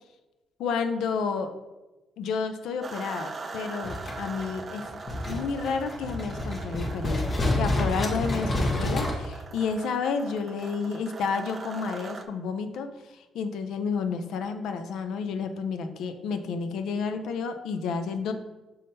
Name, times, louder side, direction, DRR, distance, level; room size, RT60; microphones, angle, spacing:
voice 1, 0.6-1.5 2.2-4.9 5.3-18.3, left 5 dB, 80° left, 8 dB, 0.4 m, -31 dB
sound 1, 2.8-12.2, right 3 dB, 35° right, 0.4 m, -41 dB
sound 2, 3.8-9.1, left 1 dB, 40° left, 0.9 m, -29 dB
5.4 x 3.5 x 2.7 m, 1.1 s
cardioid pair, 90°, 0 cm